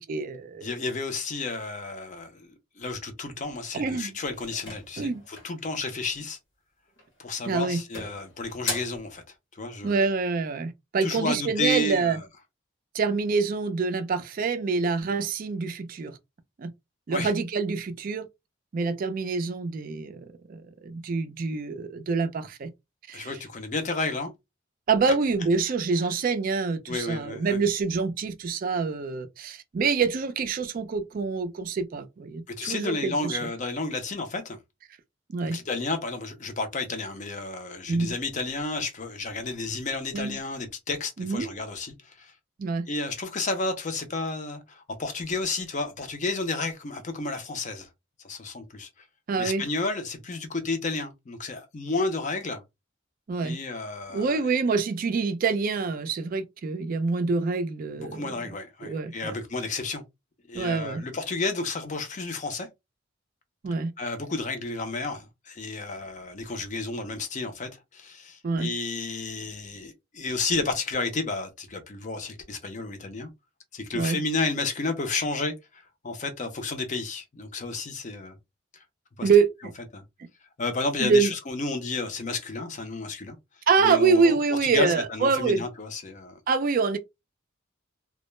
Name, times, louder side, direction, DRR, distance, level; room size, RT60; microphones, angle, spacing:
voice 1, 0.1-0.7 3.7-4.2 5.0-5.2 7.4-7.8 9.8-12.2 12.9-16.2 16.6-16.7 17.1-18.3 18.7-22.7 23.1-23.4 24.9-33.4 35.3-35.6 37.9-38.1 40.1-40.4 41.2-41.5 42.6-42.9 49.3-49.6 53.3-53.6 54.1-58.3 58.8-59.3 60.5-61.0 63.6-63.9 68.4-68.7 73.9-74.2 79.2-79.7 81.0-81.3 83.7-85.6 86.5-87.0, right 4 dB, 45° right, 0.3 m, -26 dB
voice 2, 0.6-6.4 7.2-9.2 9.5-10.1 11.0-12.2 17.1-17.3 23.1-24.3 26.9-27.6 32.5-34.6 35.4-42.3 42.9-47.9 48.2-48.9 49.4-52.6 53.4-54.4 57.9-60.0 60.5-62.7 64.0-73.3 73.7-78.4 78.7-78.8 79.2-79.3 79.9-80.0 80.6-83.3 83.8-86.4, left 3 dB, 35° left, 0.5 m, -31 dB
sound 1, 4.4-5.6 6.9-7.3 7.6-9.1, left 3 dB, 60° left, 0.9 m, -37 dB
2.2 x 2.0 x 3.0 m
head